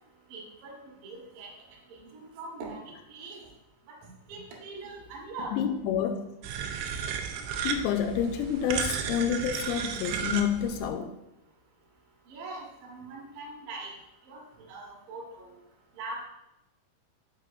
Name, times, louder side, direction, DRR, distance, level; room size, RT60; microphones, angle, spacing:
voice 1, 0.3-1.5 1.9-3.5 3.9-4.0 4.3-5.6 12.3-13.9 14.3-15.5 16.0-16.2, right 2 dB, 75° right, -2 dB, 2.0 m, -42 dB
voice 2, 5.5-6.3 7.6-11.1, left 8 dB, 90° left, 6 dB, 3.3 m, -28 dB
sound 1, 6.4-10.9, right 7 dB, 90° right, 2.7 m, -34 dB
11.0 x 5.6 x 2.5 m, 0.89 s
omnidirectional pair, 6.0 m